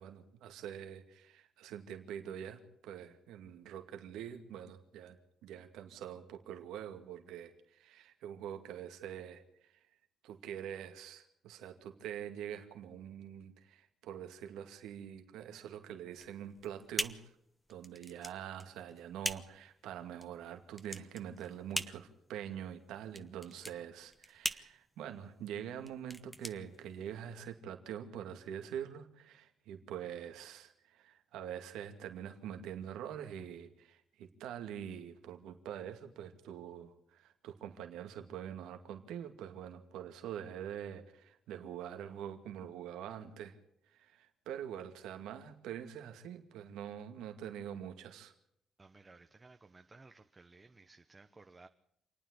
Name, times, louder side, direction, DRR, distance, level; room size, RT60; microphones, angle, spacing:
voice 1, 0.0-9.7 10.2-17.2 17.7-43.6 43.9-48.3, right 9 dB, 90° right, 6 dB, 2.3 m, -45 dB
sound 1, 16.1-27.4, equal, 5° left, 1.2 m, -42 dB
voice 2, 48.8-51.7, right 3 dB, 25° right, 6 dB, 1.1 m, -58 dB
28.0 x 9.3 x 9.9 m, 0.74 s
cardioid pair, 90°, 0 cm